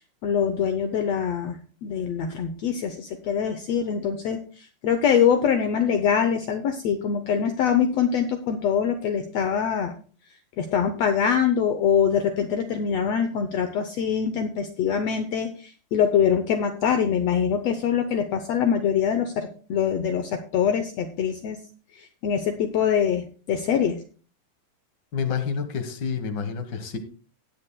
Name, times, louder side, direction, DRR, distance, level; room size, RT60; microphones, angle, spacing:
voice 1, 0.2-4.4 4.8-9.9 10.6-21.6 22.0-24.0, left 7 dB, 70° left, 7 dB, 1.6 m, -24 dB
voice 2, 25.1-27.0, left 6 dB, 50° left, 8 dB, 1.5 m, -28 dB
18.5 x 8.9 x 2.2 m, 0.39 s
omnidirectional pair, 3.6 m